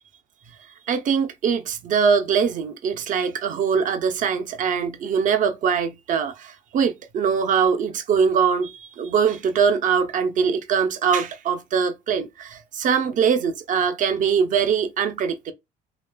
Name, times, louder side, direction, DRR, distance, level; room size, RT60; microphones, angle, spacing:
voice 1, 0.9-15.5, right 6 dB, 50° right, 0.5 m, -22 dB
3.1 x 2.3 x 2.2 m
cardioid pair, 110°, 17 cm